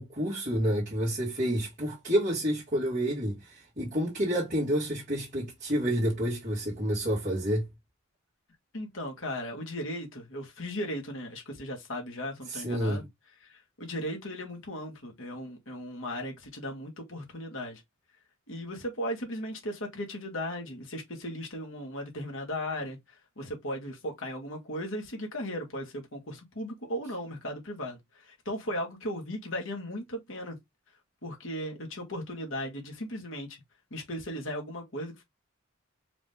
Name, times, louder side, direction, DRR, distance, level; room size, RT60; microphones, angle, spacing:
voice 1, 0.0-7.7 12.5-13.0, equal, 40° right, 1.9 m, -29 dB
voice 2, 8.7-13.1 13.4-17.8 18.5-30.6 31.2-33.6 33.9-35.2, equal, 65° left, 2.0 m, -37 dB
5.0 x 3.1 x 3.5 m
head